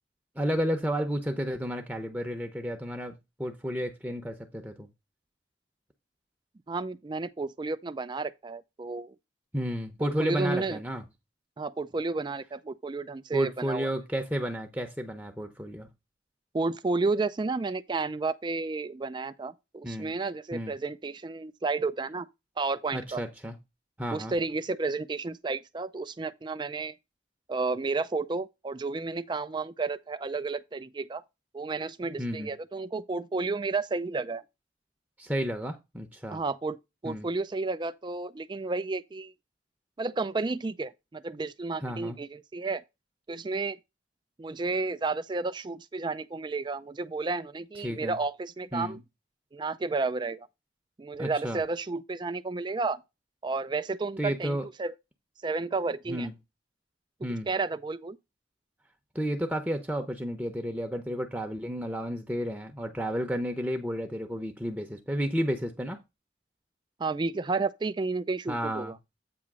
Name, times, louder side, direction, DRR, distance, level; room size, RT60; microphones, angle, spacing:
voice 1, 0.4-4.9 9.5-11.0 13.3-15.9 19.8-20.1 20.5-20.7 22.9-23.6 24.0-24.3 32.2-32.5 35.2-36.4 37.0-37.3 41.8-42.2 47.8-48.2 48.7-49.0 51.2-51.6 54.2-54.6 56.1-56.3 57.2-57.5 59.1-66.0 68.5-68.9, equal, 10° right, 0.8 m, -32 dB
voice 2, 6.7-9.1 10.0-10.8 11.6-13.9 16.5-22.3 22.6-23.2 24.1-27.0 27.5-31.2 31.5-34.4 36.3-36.8 37.0-39.3 40.0-42.8 43.3-43.8 44.4-49.0 49.5-50.5 51.0-53.0 53.4-54.9 55.4-56.3 57.5-58.2 67.0-69.0, right 3 dB, 25° right, 0.4 m, -32 dB
8.6 x 3.0 x 6.0 m
head